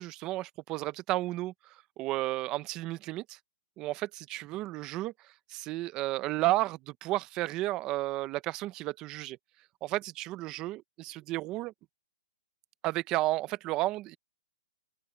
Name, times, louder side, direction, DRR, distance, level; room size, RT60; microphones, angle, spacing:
voice 1, 0.0-3.4 3.8-9.4 9.8-11.7 12.8-14.2, right 17 dB, 20° right, 0.6 m, -33 dB
open air
hypercardioid pair, 165°, 3 cm